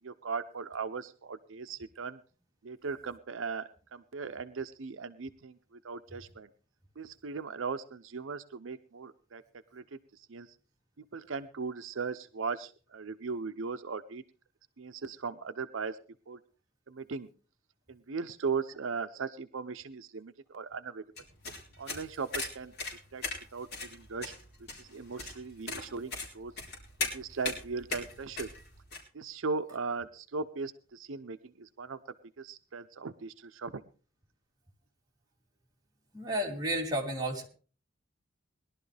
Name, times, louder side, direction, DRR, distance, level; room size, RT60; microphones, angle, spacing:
voice 1, 0.0-2.2 2.6-6.5 7.0-9.4 9.7-10.6 11.0-14.2 14.8-16.0 16.3-16.4 16.9-17.3 17.9-21.0 21.8-22.7 23.1-23.2 23.5-24.3 24.8-26.5 27.1-28.5 29.1-32.0 32.4-33.8, right 4 dB, 75° right, 9 dB, 0.7 m, -38 dB
sound 1, 21.2-29.0, left 3 dB, 55° left, 4.3 m, -39 dB
voice 2, 36.1-37.5, right 1 dB, 20° right, -1 dB, 3.0 m, -32 dB
20.5 x 11.5 x 3.4 m, 0.37 s
head